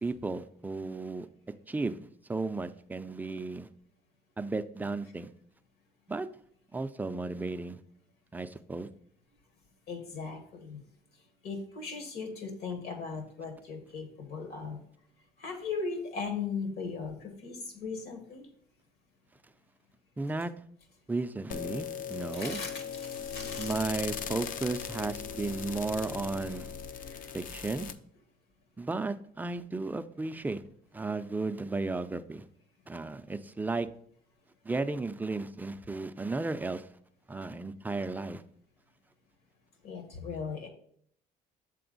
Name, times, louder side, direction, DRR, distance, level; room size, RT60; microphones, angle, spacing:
voice 1, 0.0-1.3 1.7-2.0 2.3-3.7 4.4-5.3 6.1-6.3 6.7-7.8 8.3-8.9 20.2-20.5 21.1-22.6 23.6-26.7 27.3-27.9 28.8-30.6 30.9-32.4 32.9-33.9 34.6-36.9 37.3-38.4, right 3 dB, 10° right, 10 dB, 0.3 m, -34 dB
voice 2, 9.9-10.8 11.4-14.8 15.4-18.5 22.3-23.7 27.0-27.4 39.8-40.7, left 5 dB, 70° left, 5 dB, 1.5 m, -38 dB
sound 1, 21.5-27.9, left 7 dB, 55° left, 0.5 m, -39 dB
6.8 x 4.2 x 3.9 m, 0.63 s
cardioid pair, 110°, 17 cm